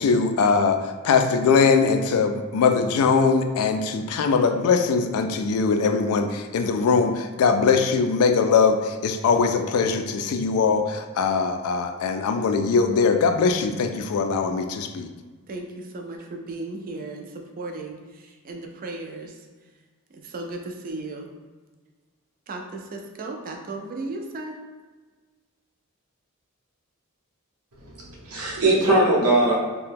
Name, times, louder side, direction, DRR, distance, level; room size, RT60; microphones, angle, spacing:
voice 1, 0.0-15.1, left 5 dB, 70° left, 6 dB, 0.3 m, -21 dB
voice 2, 15.5-19.5 20.1-21.3 22.5-24.6, right 2 dB, 40° right, 2 dB, 0.4 m, -35 dB
voice 3, 28.0-29.5, right 1 dB, 85° right, -4 dB, 0.9 m, -20 dB
2.7 x 2.2 x 3.4 m, 1.4 s
head